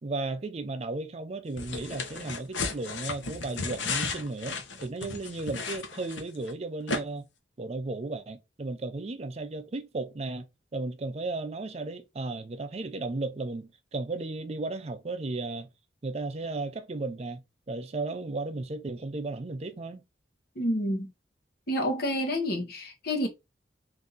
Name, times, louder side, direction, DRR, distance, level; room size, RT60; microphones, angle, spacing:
voice 1, 0.0-7.3 7.6-10.5 10.7-15.7 16.0-17.4 17.7-20.0, right 3 dB, 35° right, 0.4 m, -35 dB
sound 1, 1.6-6.5 6.9-7.0, left 4 dB, 85° left, 0.9 m, -34 dB
voice 2, 20.5-21.1 21.7-23.3, equal, 55° left, 1.2 m, -29 dB
3.6 x 2.7 x 3.9 m
head